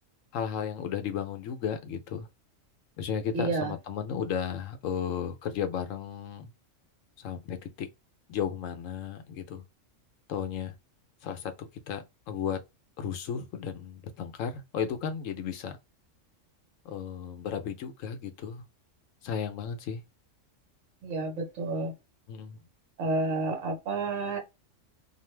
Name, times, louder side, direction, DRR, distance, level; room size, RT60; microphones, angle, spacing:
voice 1, 0.3-2.3 3.0-6.5 7.2-7.9 8.3-9.6 10.3-10.7 11.2-12.6 13.0-15.8 16.8-18.6 19.2-20.0 22.3-22.6, left 7 dB, 80° left, 1.0 m, -34 dB
voice 2, 3.3-3.8 21.0-21.9 23.0-24.4, right 3 dB, 65° right, 1.3 m, -30 dB
2.6 x 2.4 x 3.1 m
omnidirectional pair, 1.3 m